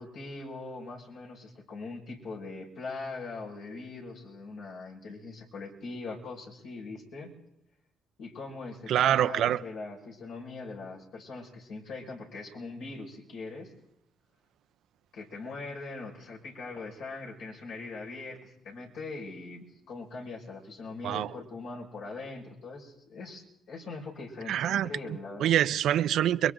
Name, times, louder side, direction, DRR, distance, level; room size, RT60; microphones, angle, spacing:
voice 1, 0.0-7.3 8.2-13.7 15.1-25.5, left 3 dB, 75° left, 5.6 m, -41 dB
voice 2, 8.9-9.6 21.0-21.3 24.5-24.9 25.4-26.5, right 11 dB, 70° right, 0.6 m, -25 dB
29.5 x 22.5 x 3.9 m
supercardioid pair, 65°, 0 cm